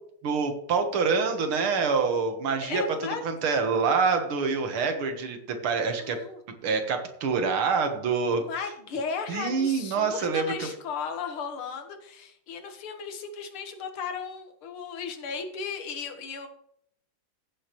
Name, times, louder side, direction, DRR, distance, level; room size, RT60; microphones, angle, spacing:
voice 1, 0.2-2.8 3.2-6.2 6.6-8.4 9.3-10.7, right 5 dB, 80° right, 6 dB, 2.2 m, -26 dB
voice 2, 2.6-3.2 6.0-6.4 8.3-16.5, left 5 dB, 80° left, 6 dB, 2.2 m, -35 dB
15.5 x 7.3 x 3.0 m, 0.69 s
omnidirectional pair, 2.3 m